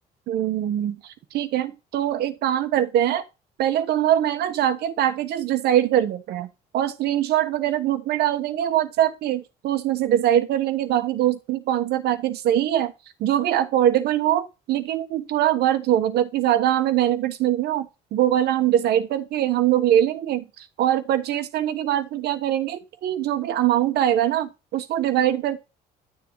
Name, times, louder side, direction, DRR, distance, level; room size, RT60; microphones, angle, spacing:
voice 1, 0.3-0.9 1.3-3.2 3.6-6.5 6.7-12.9 13.2-25.6, right 11 dB, 75° right, 1.2 m, -22 dB
11.5 x 7.3 x 3.1 m
cardioid pair, 110°, 17 cm